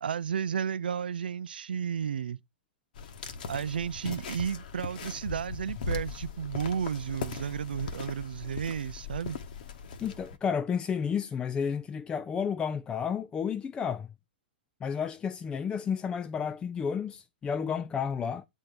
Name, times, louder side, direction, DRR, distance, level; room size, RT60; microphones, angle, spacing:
voice 1, 0.0-2.4 3.5-9.4, right 8 dB, 70° right, 0.5 m, -33 dB
sound 1, 3.0-10.4, left 5 dB, 55° left, 1.1 m, -39 dB
voice 2, 10.0-14.1 14.8-18.4, left 7 dB, 15° left, 0.5 m, -31 dB
9.1 x 4.2 x 6.5 m
figure-of-eight pair, 110°, 5 cm